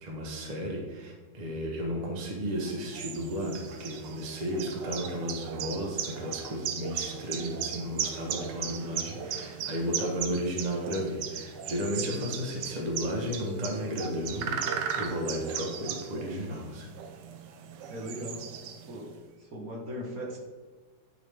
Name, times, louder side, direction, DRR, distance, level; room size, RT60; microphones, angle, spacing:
voice 1, 0.0-14.6 15.0-16.9, equal, 30° right, 0 dB, 0.9 m, -33 dB
sound 1, 2.5-19.1, right 8 dB, 80° right, 1.3 m, -37 dB
voice 2, 17.9-18.4 18.9-19.1 19.4-20.4, equal, 55° right, -1 dB, 1.6 m, -38 dB
10.0 x 3.6 x 3.4 m, 1.3 s
omnidirectional pair, 1.9 m